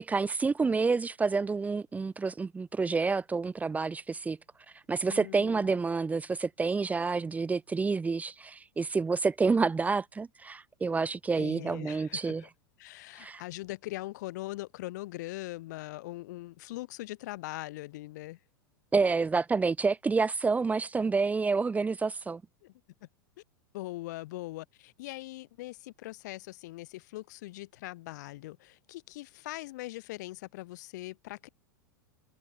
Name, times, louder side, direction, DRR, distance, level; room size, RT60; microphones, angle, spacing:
voice 1, 0.0-4.4 4.9-12.4 13.2-13.4 18.9-22.4, right 4 dB, 15° right, 0.9 m, -28 dB
voice 2, 5.1-5.7 11.4-12.5 12.8-18.4 22.6-22.7 23.0-23.1 23.7-31.5, left 18 dB, 60° left, 1.6 m, -41 dB
figure-of-eight pair, 90°, 11 cm